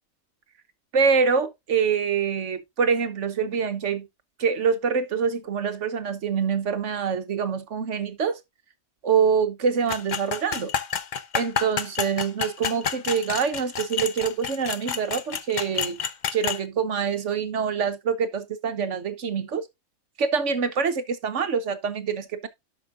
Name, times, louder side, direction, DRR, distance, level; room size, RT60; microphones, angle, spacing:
voice 1, 0.9-4.1 4.4-8.4 9.0-10.7 11.3-16.0 16.3-19.6 20.2-22.5, right 6 dB, 60° right, 1.2 m, -25 dB
sound 1, 9.9-16.6, left 7 dB, 50° left, 0.6 m, -29 dB
11.0 x 6.1 x 2.6 m
omnidirectional pair, 1.5 m